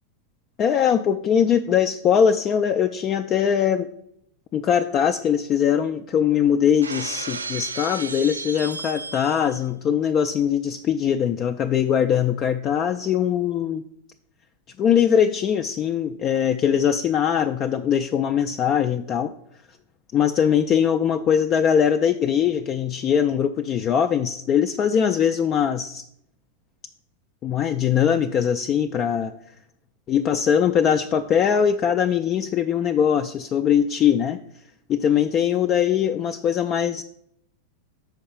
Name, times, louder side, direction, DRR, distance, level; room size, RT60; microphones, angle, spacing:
voice 1, 0.6-3.9 4.5-13.8 14.8-19.3 20.1-26.0 27.4-29.3 30.1-34.4 34.9-37.0, left 8 dB, 30° left, 6 dB, 0.3 m, -21 dB
Shatter, 6.8-9.6, right 4 dB, 75° right, 0.4 m, -33 dB
6.4 x 4.6 x 6.6 m, 0.74 s
figure-of-eight pair, 90°, 0 cm